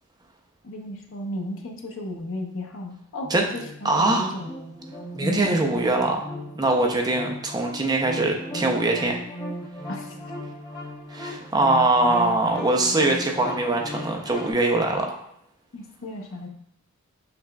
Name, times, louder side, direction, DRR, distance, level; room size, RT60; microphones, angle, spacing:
voice 1, 0.6-4.5 5.2-5.8 9.9-10.1 15.7-16.5, left 1 dB, 60° left, 2 dB, 0.7 m, -34 dB
sound 1, 3.2-14.5, equal, 20° left, 1.0 m, -36 dB
voice 2, 3.8-4.3 5.2-6.2 6.5-9.2 11.1-15.2, right 2 dB, 20° right, 2 dB, 0.4 m, -22 dB
5.8 x 4.1 x 2.2 m, 0.73 s
head